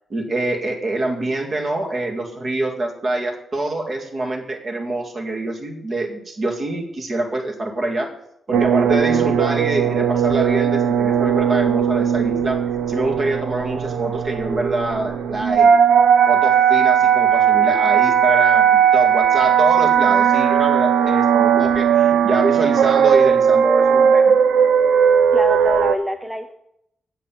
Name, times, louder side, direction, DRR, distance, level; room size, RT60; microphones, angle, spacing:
voice 1, 0.1-8.1 8.5-15.7 16.3-24.3, right 2 dB, 40° right, 2 dB, 2.0 m, -25 dB
sound 1, 8.5-26.0, right 8 dB, 90° right, 0.7 m, -17 dB
voice 2, 25.3-26.5, equal, 5° right, 6 dB, 0.7 m, -25 dB
8.0 x 7.6 x 7.5 m, 0.77 s
cardioid pair, 125°, 0 cm